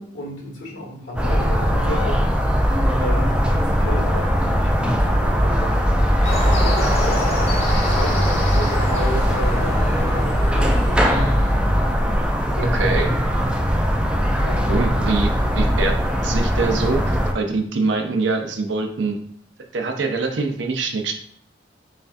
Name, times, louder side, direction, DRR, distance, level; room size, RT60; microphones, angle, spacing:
voice 1, 0.0-2.2 3.0-7.4 7.9-11.4 12.0-12.3 12.5-12.8 14.4-14.9, left 1 dB, 75° left, -3 dB, 1.4 m, -32 dB
sound 1, 1.2-17.3, equal, 5° right, 0.3 m, -20 dB
sound 2, 6.2-11.5, left 1 dB, 35° left, 0.9 m, -28 dB
voice 2, 12.7-13.1 14.7-15.3 15.5-16.0 16.2-19.2 19.7-21.1, right 3 dB, 65° right, 4 dB, 0.6 m, -23 dB
5.5 x 2.4 x 2.5 m, 0.64 s
head